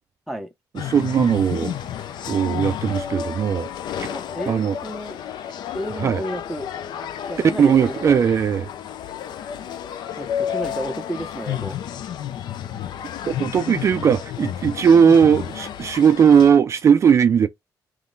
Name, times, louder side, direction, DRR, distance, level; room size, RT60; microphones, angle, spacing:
sound 1, 0.8-16.5, left 9 dB, 80° left, 0.5 m, -31 dB
voice 1, 0.8-1.7 2.3-3.7 4.0-4.1 4.5-4.8 6.0-6.2 7.4-8.7 13.2-17.5, right 7 dB, 40° right, 0.3 m, -18 dB
voice 2, 4.1-5.2 5.7-6.7 7.3-8.2 10.2-11.8, equal, ahead, 0.7 m, -32 dB
3.6 x 3.1 x 3.8 m
cardioid pair, 150°, 7 cm